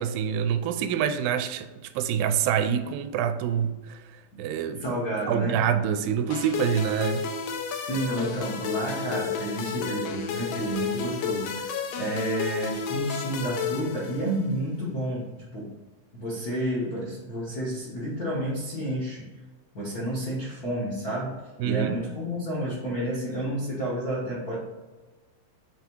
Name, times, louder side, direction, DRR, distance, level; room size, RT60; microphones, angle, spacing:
voice 1, 0.0-4.0 4.4-4.8 5.3-7.3 21.6-22.0, right 8 dB, 90° right, 2.3 m, -26 dB
voice 2, 4.8-5.6 7.9-15.3 15.5-15.7 16.1-19.3 19.7-21.4 21.6-24.6, right 1 dB, 65° left, 0.9 m, -30 dB
sound 1, 6.3-14.6, left 6 dB, 85° left, 2.5 m, -32 dB
5.9 x 3.5 x 4.4 m
omnidirectional pair, 4.0 m